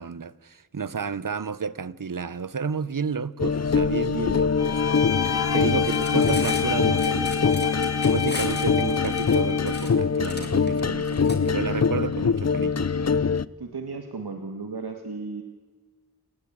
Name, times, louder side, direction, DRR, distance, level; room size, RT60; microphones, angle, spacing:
voice 1, 0.0-4.8 5.5-7.7 8.1-12.9, right 5 dB, 55° right, 0.9 m, -31 dB
sound 1, 3.4-13.5, left 5 dB, 45° left, 0.6 m, -23 dB
Bowed string instrument, 4.6-9.9, left 6 dB, 85° left, 1.0 m, -30 dB
Cutlery silverware, 5.9-11.4, left 1 dB, 25° left, 3.8 m, -38 dB
voice 2, 13.6-15.4, right 4 dB, 80° right, 2.1 m, -35 dB
28.0 x 16.0 x 8.8 m
wide cardioid pair, 65°, 38 cm